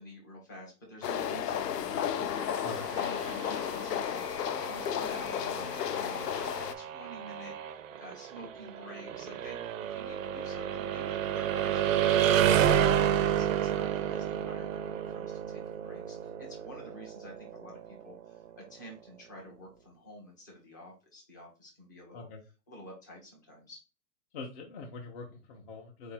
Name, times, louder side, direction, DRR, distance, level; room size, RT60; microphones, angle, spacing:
voice 1, 0.0-2.5 3.0-4.3 4.6-6.5 6.8-7.5 7.9-22.3 22.7-23.8, equal, 15° left, -1 dB, 0.4 m, -49 dB
sound 1, 1.0-6.7, left 9 dB, 90° left, 0.7 m, -33 dB
sound 2, 2.4-18.2, right 10 dB, 60° right, 0.5 m, -31 dB
voice 2, 24.3-26.1, left 4 dB, 40° left, 0 dB, 0.7 m, -43 dB
4.1 x 2.6 x 4.3 m, 0.33 s
hypercardioid pair, 160°, 47 cm